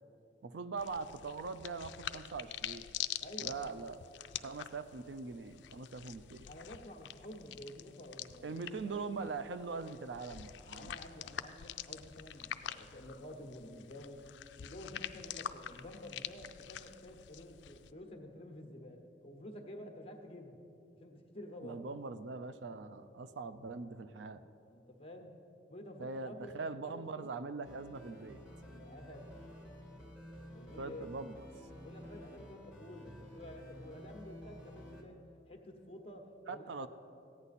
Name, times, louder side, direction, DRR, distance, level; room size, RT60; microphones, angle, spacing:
voice 1, 0.4-2.9 3.4-4.0 4.4-6.5 8.4-10.9 21.6-24.4 26.0-28.4 30.8-31.4 36.5-36.9, right 4 dB, 75° right, 12 dB, 0.4 m, -42 dB
sound 1, 0.8-17.9, left 11 dB, 80° left, 0.4 m, -46 dB
voice 2, 3.2-3.8 6.5-9.0 10.7-14.2 14.6-20.6 21.0-21.9 24.7-25.3 25.7-26.5 26.8-27.3 28.7-29.3 30.5-31.1 31.8-35.2 35.5-36.9, left 1 dB, 30° left, 3 dB, 1.1 m, -50 dB
sound 2, 27.6-35.0, equal, 5° right, 1.6 m, -52 dB
14.5 x 9.7 x 4.1 m, 2.7 s
head